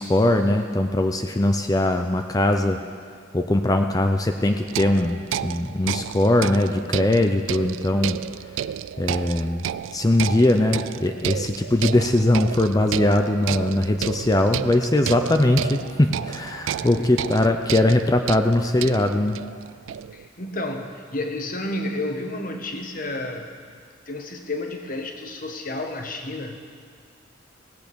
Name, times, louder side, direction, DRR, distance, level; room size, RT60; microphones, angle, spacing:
voice 1, 0.0-2.8 3.3-5.2 5.4-8.2 9.0-9.6 9.9-19.4, left 1 dB, 20° left, 5 dB, 0.5 m, -21 dB
sound 1, 4.7-20.3, right 9 dB, 70° right, 0.3 m, -31 dB
voice 2, 16.8-17.1 20.1-23.5 24.1-26.6, left 2 dB, 45° left, 4 dB, 1.2 m, -31 dB
17.5 x 8.2 x 7.0 m, 2.1 s
head